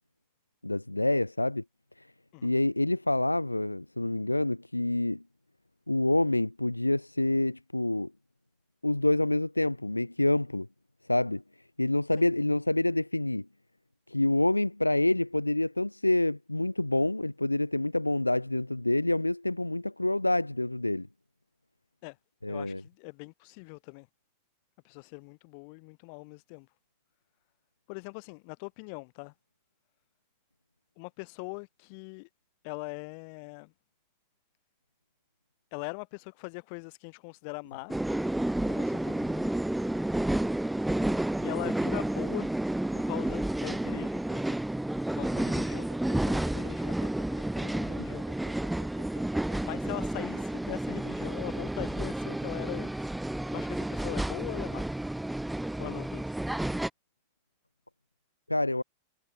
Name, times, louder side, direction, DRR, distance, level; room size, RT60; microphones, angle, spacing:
voice 1, 0.6-1.6 2.4-5.2 5.9-8.1 8.8-10.7 11.1-11.4 11.8-13.5 14.1-21.1 22.4-22.8 58.5-58.8, left 2 dB, 85° left, 0.4 m, -27 dB
voice 2, 22.5-24.1 24.8-26.7 27.9-29.3 31.0-32.3 32.6-33.7 35.7-38.0 38.6-39.5 41.4-42.5 42.9-44.6 45.1-48.3 49.6-52.9 53.5-54.9 55.8-56.3, left 37 dB, 45° left, 2.0 m, -41 dB
sound 1, 37.9-56.9, right 1 dB, 5° right, 0.7 m, -31 dB
sound 2, 45.7-51.6, right 2 dB, 85° right, 7.5 m, -52 dB
figure-of-eight pair, 90°, 0 cm